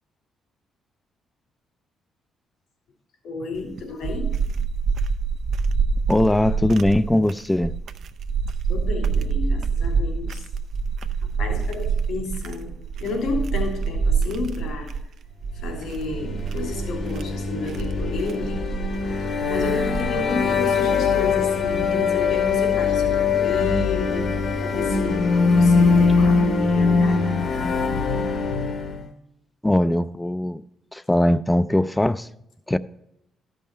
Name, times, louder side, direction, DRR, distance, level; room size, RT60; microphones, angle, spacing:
voice 1, 3.2-4.3 8.7-10.4 11.4-12.7 13.0-14.9 15.5-18.6 19.5-24.3 24.6-27.5, left 3 dB, 80° left, 3.3 m, -31 dB
sound 1, 3.6-20.4, right 5 dB, 65° right, 0.5 m, -26 dB
voice 2, 6.1-7.7 29.6-30.6 30.9-32.3 32.7-32.8, left 1 dB, 10° left, 0.4 m, -20 dB
sound 2, 16.1-29.1, left 4 dB, 55° left, 1.2 m, -22 dB
13.0 x 5.6 x 4.3 m
cardioid pair, 90°, 0 cm